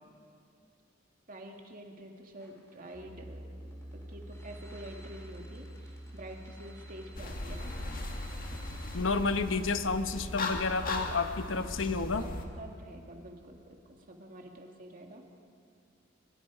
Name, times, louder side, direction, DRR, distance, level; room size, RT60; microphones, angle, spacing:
voice 1, 1.3-3.4 4.1-7.7 12.1-15.2, right 1 dB, 45° right, 2 dB, 2.3 m, -47 dB
sound 1, 2.4-9.0, right 1 dB, 15° left, 3.8 m, -55 dB
sound 2, 2.9-10.6, right 1 dB, 20° right, 6.3 m, -48 dB
sound 3, 7.2-12.5, left 2 dB, 50° left, 2.0 m, -38 dB
voice 2, 8.9-12.2, left 4 dB, 90° left, 9 dB, 1.0 m, -30 dB
23.0 x 22.5 x 5.0 m, 2.3 s
head